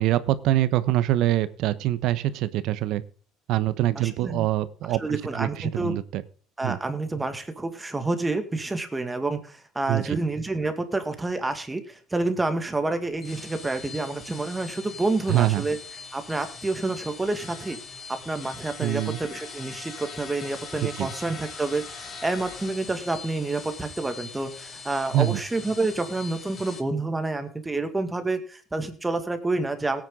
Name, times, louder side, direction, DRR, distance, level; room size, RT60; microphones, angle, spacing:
voice 1, 0.0-3.0 3.5-6.2 6.6-6.8 9.9-10.2 15.3-15.7 18.8-19.2 20.8-21.1 25.1-25.4, right 14 dB, 65° right, 14 dB, 1.1 m, -24 dB
voice 2, 4.0-4.5 5.0-5.9 6.6-15.8 16.1-17.8 18.2-30.0, right 2 dB, 10° right, 8 dB, 2.1 m, -28 dB
sound 1, 13.1-26.8, left 5 dB, 35° left, 3.5 m, -42 dB
17.5 x 9.2 x 3.9 m, 0.41 s
cardioid pair, 120°, 0 cm